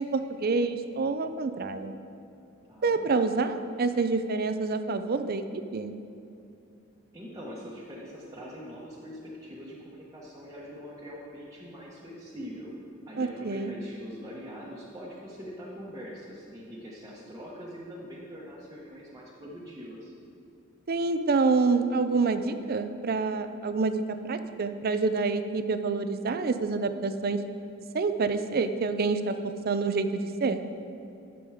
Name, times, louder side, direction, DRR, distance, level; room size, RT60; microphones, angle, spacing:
voice 1, 0.0-1.9 2.8-5.5 5.7-5.9 13.2-13.7 20.9-24.0 24.3-27.4 27.9-29.4 29.6-30.6, right 4 dB, 50° right, 10 dB, 0.5 m, -27 dB
voice 2, 2.7-3.0 7.1-12.7 13.1-20.1, equal, 15° right, -7 dB, 1.2 m, -43 dB
10.5 x 7.1 x 5.0 m, 2.7 s
head